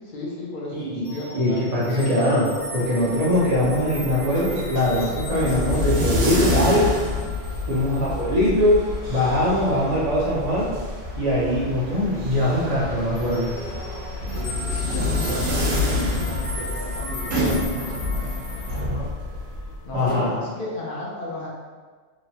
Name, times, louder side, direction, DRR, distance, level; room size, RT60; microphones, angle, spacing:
voice 1, 0.0-2.4 7.7-8.1 14.3-19.1 19.8-21.5, left 1 dB, 55° left, -5 dB, 0.6 m, -34 dB
voice 2, 0.7-1.1 1.3-6.9 7.6-8.8 9.1-10.7 11.2-13.5 19.9-20.3, left 1 dB, 45° right, -9 dB, 0.6 m, -22 dB
sound 1, 1.0-11.5 11.7-12.1 12.4-18.8, left 1 dB, 80° left, 1.1 m, -38 dB
sound 2, 3.1-20.1, left 1 dB, 70° right, 1.0 m, -28 dB
2.9 x 2.1 x 2.7 m, 1.5 s
omnidirectional pair, 1.3 m